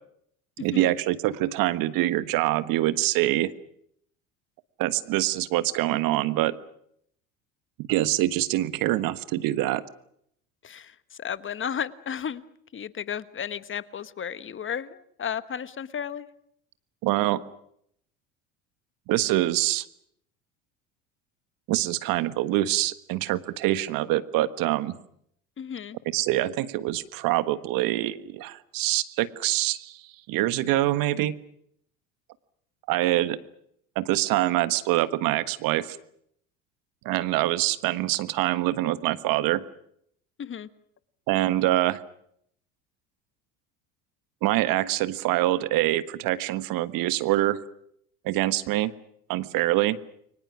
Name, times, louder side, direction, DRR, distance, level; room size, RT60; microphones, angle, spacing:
voice 1, 0.6-3.5 4.8-6.5 7.8-9.8 17.0-17.4 19.1-19.8 21.7-25.0 26.1-30.0 30.3-31.4 32.9-33.4 33.9-36.0 37.0-39.6 41.3-42.0 44.4-47.6 48.2-48.9 49.3-50.0, right 16 dB, 60° right, 14 dB, 1.5 m, -25 dB
voice 2, 10.6-12.4 12.7-16.3 25.6-26.0 40.4-40.7, left 8 dB, 30° left, 15 dB, 1.3 m, -33 dB
29.5 x 24.0 x 6.2 m, 0.70 s
hypercardioid pair, 80°, 39 cm